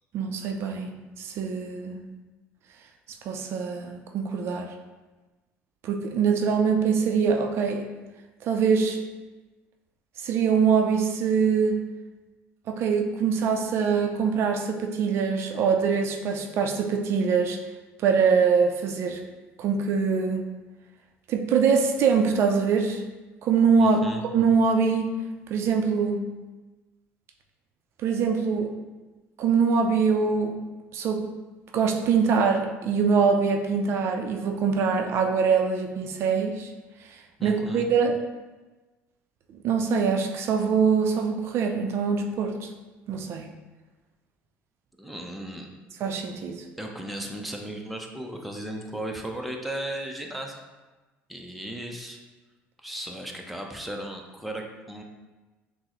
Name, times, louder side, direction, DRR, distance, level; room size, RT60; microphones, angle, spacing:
voice 1, 0.1-2.0 3.3-4.7 5.8-7.9 8.4-9.0 10.2-11.8 12.7-17.6 18.0-19.2 19.6-20.4 21.3-23.0 23.4-24.0 24.3-25.1 25.5-26.2 28.0-28.7 29.4-30.6 30.9-31.3 31.7-36.7 37.4-38.2 39.6-42.7 43.1-43.5 46.0-46.6, right 5 dB, 55° right, 4 dB, 0.4 m, -23 dB
voice 2, 23.8-24.2 37.4-37.9 45.0-45.7 46.8-50.6 51.3-52.2 52.8-55.0, right 1 dB, ahead, 1 dB, 0.5 m, -35 dB
5.9 x 2.0 x 3.0 m, 1.2 s
supercardioid pair, 105°, 5 cm